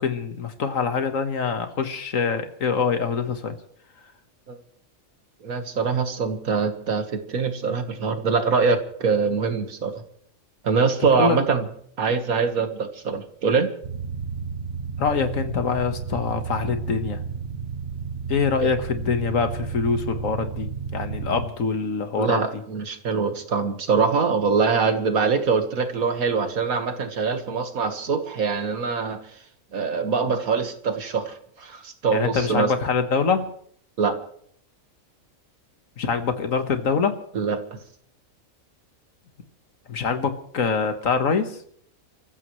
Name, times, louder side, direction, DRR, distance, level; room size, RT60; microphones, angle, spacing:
voice 1, 0.0-3.6 11.2-11.4 15.0-17.2 18.3-22.4 32.1-33.5 36.0-37.1 39.9-41.5, left 5 dB, 70° left, 8 dB, 1.8 m, -24 dB
voice 2, 5.4-10.0 10.6-11.7 12.0-13.7 18.6-18.7 22.2-29.2 29.7-32.7 34.0-34.2 37.3-37.6, right 5 dB, 85° right, 7 dB, 2.0 m, -23 dB
sound 1, 13.8-21.5, right 6 dB, 50° right, 1.2 m, -32 dB
30.0 x 14.5 x 3.2 m, 0.63 s
omnidirectional pair, 1.4 m